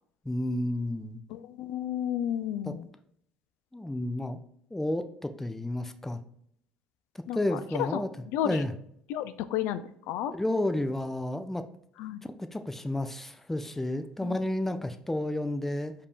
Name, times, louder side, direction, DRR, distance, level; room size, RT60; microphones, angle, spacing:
voice 1, 0.3-1.2 2.7-2.8 3.7-4.4 4.7-6.2 7.3-8.1 8.4-8.7 10.3-11.6 12.4-15.9, left 1 dB, 10° left, 8 dB, 0.4 m, -31 dB
voice 2, 1.3-2.9 7.3-8.0 8.3-8.6 9.1-10.3 12.0-12.2 14.2-14.4, left 11 dB, 75° left, 11 dB, 0.3 m, -32 dB
5.0 x 2.8 x 3.5 m, 0.69 s
supercardioid pair, 85°, 4 cm